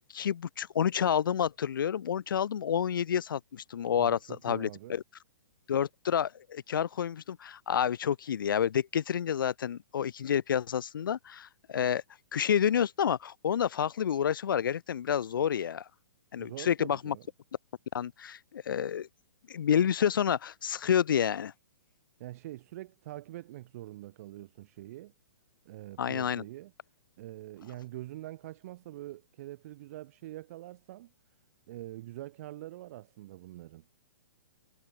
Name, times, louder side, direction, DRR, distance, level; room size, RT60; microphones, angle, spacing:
voice 1, 0.0-5.0 5.7-12.0 12.3-15.8 16.3-17.2 17.9-19.1 19.5-21.5 26.0-26.4, left 8 dB, 80° left, 0.7 m, -29 dB
voice 2, 4.0-5.0 16.4-17.3 22.2-25.1 25.6-26.7 27.2-31.1 31.7-33.8, right 15 dB, 45° right, 1.8 m, -44 dB
hypercardioid pair, 150°, 11 cm